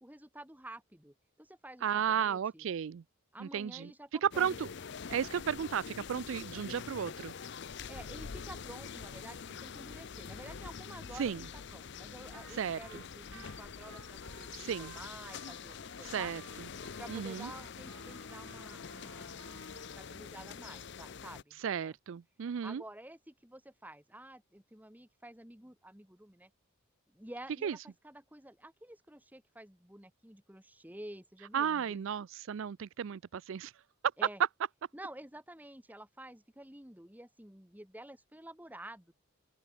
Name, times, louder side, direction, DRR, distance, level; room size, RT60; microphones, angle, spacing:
voice 1, 0.0-2.7 3.3-4.6 7.9-16.3 17.0-21.9 22.6-26.5 27.1-32.1 34.2-34.4 34.9-39.1, right 1 dB, 10° right, 1.9 m, -50 dB
voice 2, 1.8-3.0 3.4-3.9 4.2-4.7 5.1-7.3 11.2-11.4 12.5-13.0 14.5-14.9 16.0-16.4 17.1-17.5 21.6-22.8 27.6-27.7 31.5-33.7, right 8 dB, 65° right, 0.4 m, -34 dB
sound 1, 4.3-21.4, left 6 dB, 50° left, 0.6 m, -45 dB
Trumpet, 12.3-12.5 12.8-20.2, right 5 dB, 85° right, 3.5 m, -56 dB
open air
head